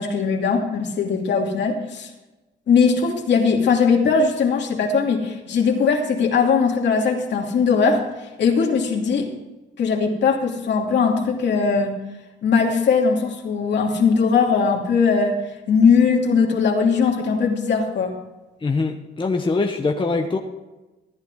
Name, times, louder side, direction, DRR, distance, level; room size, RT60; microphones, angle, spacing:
voice 1, 0.0-2.1 2.7-8.0 8.4-9.3 9.8-12.0 12.4-15.4 15.7-18.1, left 5 dB, 60° left, 0 dB, 2.8 m, -19 dB
voice 2, 18.6-20.4, left 3 dB, 25° left, 2 dB, 1.1 m, -23 dB
14.5 x 10.0 x 4.0 m, 1.1 s
cardioid pair, 90°, 20 cm